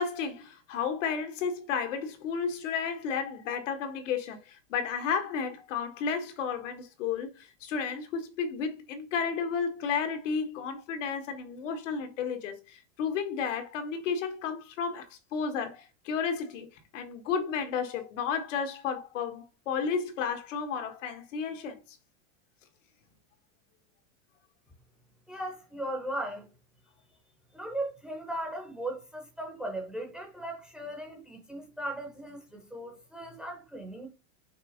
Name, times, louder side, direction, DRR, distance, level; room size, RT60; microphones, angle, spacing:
voice 1, 0.0-16.7 16.9-21.8, left 6 dB, 75° left, 1.5 m, -32 dB
voice 2, 25.3-26.5 27.5-34.1, right 1 dB, ahead, 0.7 m, -37 dB
5.8 x 3.5 x 5.0 m
supercardioid pair, 180°, 38 cm